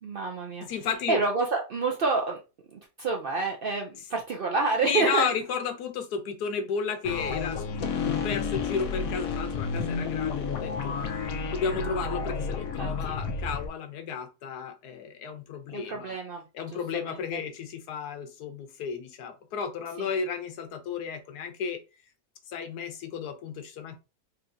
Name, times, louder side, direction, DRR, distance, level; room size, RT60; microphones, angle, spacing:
voice 1, 0.0-0.7 1.1-2.4 2.7-5.3 12.8-13.2 15.7-16.4 17.0-17.2 20.0-20.1, right 4 dB, 80° right, 2 dB, 0.5 m, -28 dB
voice 2, 0.6-1.2 4.8-8.0 8.2-11.0 11.5-16.1 16.5-21.8 22.5-23.9, left 6 dB, 85° left, 7 dB, 1.3 m, -33 dB
sound 1, 7.0-13.7, left 5 dB, 70° left, 1.0 m, -31 dB
4.4 x 2.7 x 2.6 m, 0.29 s
omnidirectional pair, 1.6 m